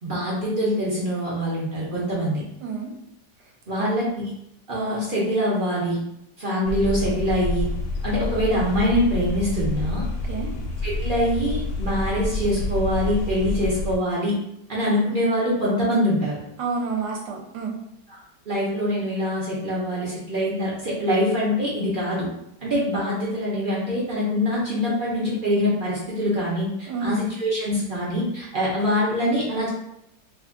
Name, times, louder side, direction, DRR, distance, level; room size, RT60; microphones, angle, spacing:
voice 1, 0.0-2.4 3.7-4.3 4.7-6.0 6.4-7.7 8.0-10.0 10.8-14.3 14.7-16.4 18.1-18.2 18.5-22.3 22.6-29.7, equal, 50° right, -6 dB, 0.6 m, -24 dB
sound 1, 6.6-14.0, left 2 dB, 80° left, 1.2 m, -28 dB
voice 2, 16.6-17.7 26.9-27.2, right 5 dB, 75° right, 1 dB, 1.2 m, -28 dB
2.9 x 2.4 x 3.5 m, 0.80 s
omnidirectional pair, 1.9 m